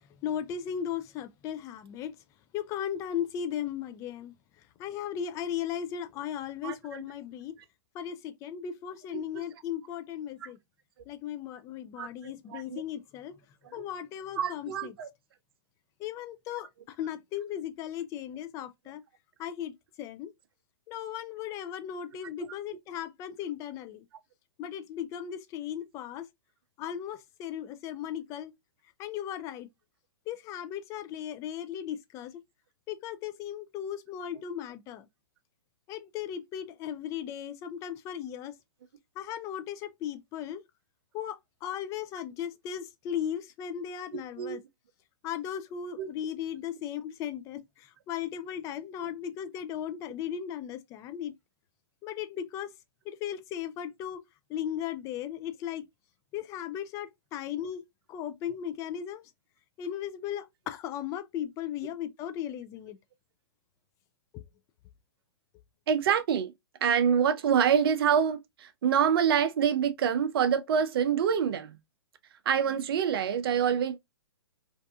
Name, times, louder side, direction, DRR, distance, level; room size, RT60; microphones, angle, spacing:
voice 1, 0.2-2.1 2.5-4.3 4.8-7.5 7.9-10.6 11.1-13.3 13.7-14.9 16.0-16.7 17.0-19.0 19.4-20.3 20.9-24.0 24.6-26.3 26.8-28.5 29.0-29.7 30.3-32.3 32.9-35.1 35.9-38.5 39.2-40.6 41.1-44.6 45.2-51.3 52.0-52.7 53.1-54.2 54.5-55.8 56.3-57.8 58.1-59.2 59.8-63.0 64.3-64.4, left 9 dB, 20° left, 0.3 m, -36 dB
voice 2, 6.6-7.0 9.3-9.4 10.4-10.5 12.0-12.8 14.3-15.1 44.1-44.6 46.0-46.1 65.9-66.5 66.8-71.8 72.5-74.0, right 8 dB, 60° right, 0.6 m, -26 dB
2.5 x 2.5 x 2.2 m
hypercardioid pair, 130°, 14 cm